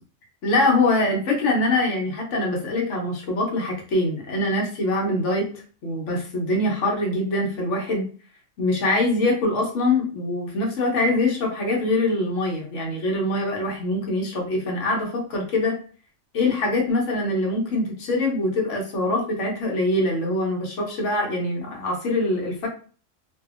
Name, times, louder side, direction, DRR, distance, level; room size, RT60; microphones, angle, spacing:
voice 1, 0.4-5.5 5.8-8.1 8.6-15.8 16.3-22.7, left 2 dB, 65° left, 0 dB, 1.1 m, -23 dB
2.7 x 2.5 x 2.4 m, 0.41 s
omnidirectional pair, 1.4 m